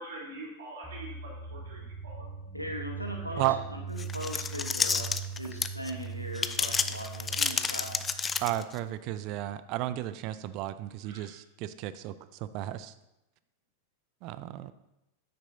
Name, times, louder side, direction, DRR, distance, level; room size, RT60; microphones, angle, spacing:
voice 1, 0.0-2.2 3.3-3.5 11.0-11.3, right 1 dB, 60° right, -5 dB, 3.3 m, -44 dB
sound 1, 0.8-8.6, right 6 dB, 10° right, 1.6 m, -41 dB
voice 2, 2.5-8.1, equal, 90° left, 2 dB, 1.2 m, -39 dB
sound 2, 4.0-5.9 6.3-8.8, left 5 dB, 15° left, 0.4 m, -30 dB
voice 3, 8.4-12.1 12.5-12.9 14.2-14.7, right 14 dB, 40° right, 14 dB, 0.4 m, -33 dB
9.4 x 9.0 x 2.7 m, 0.91 s
figure-of-eight pair, 90°, 0 cm